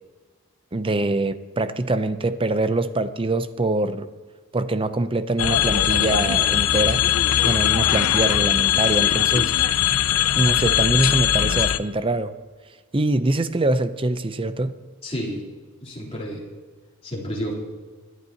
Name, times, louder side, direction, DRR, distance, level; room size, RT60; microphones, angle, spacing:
voice 1, 0.7-4.1 4.5-7.1 7.5-9.5 10.3-12.3 12.9-14.8, right 2 dB, 25° right, 11 dB, 0.6 m, -24 dB
udelnaya zug, 5.4-11.8, left 11 dB, 80° left, 0.5 m, -20 dB
voice 2, 15.0-15.4 15.8-16.4 17.0-17.5, equal, 30° left, -5 dB, 3.7 m, -30 dB
26.0 x 11.0 x 3.0 m, 1.4 s
head